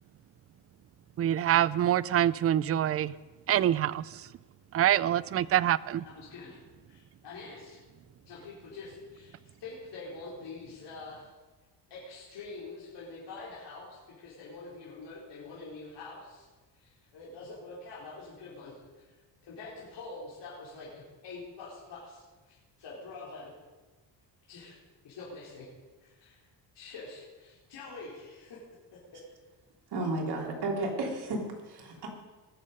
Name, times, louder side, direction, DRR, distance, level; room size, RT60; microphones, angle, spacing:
voice 1, 1.2-3.1 3.5-4.3 4.7-6.0, right 11 dB, 35° right, 19 dB, 0.4 m, -25 dB
voice 2, 6.0-6.5 6.9-7.8 8.2-11.3 11.9-16.5 16.7-19.0 19.4-22.5 22.8-23.5 24.5-24.7 25.0-25.7 26.0-26.4 26.7-28.6 29.1-29.2, left 3 dB, 70° left, -8 dB, 4.5 m, -45 dB
voice 3, 29.9-32.1, right 2 dB, 60° right, 0 dB, 3.4 m, -33 dB
20.5 x 7.5 x 5.3 m, 1.2 s
cardioid pair, 100°, 43 cm